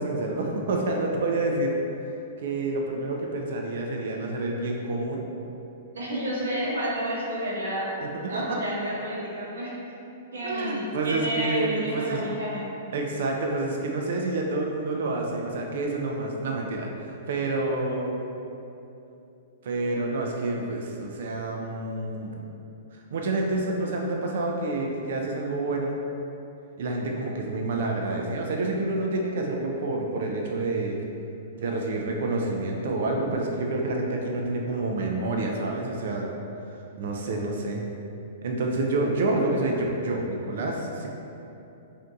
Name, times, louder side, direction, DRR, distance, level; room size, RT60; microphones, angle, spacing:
voice 1, 0.0-1.8 2.4-5.2 8.0-8.6 10.4-12.2 12.9-18.2 19.6-22.5 22.9-26.0 26.8-31.0 31.6-36.3 36.7-37.8 38.4-41.1, right 2 dB, 70° right, 0 dB, 0.4 m, -28 dB
voice 2, 5.9-7.9 8.3-9.7 10.3-12.7, equal, 85° right, -6 dB, 0.9 m, -30 dB
2.6 x 2.5 x 3.4 m, 2.8 s
hypercardioid pair, 130°, 0 cm